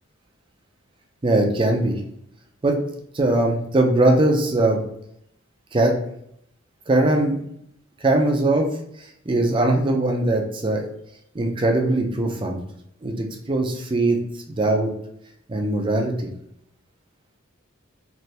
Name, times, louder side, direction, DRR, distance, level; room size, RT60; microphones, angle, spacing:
voice 1, 1.2-2.0 2.6-2.8 3.1-4.8 5.7-6.0 6.9-7.4 8.0-8.7 9.3-10.8 11.3-12.6 13.0-14.2 14.6-14.9 15.5-16.3, right 2 dB, 25° right, 2 dB, 0.5 m, -20 dB
3.2 x 2.6 x 2.7 m, 0.73 s
head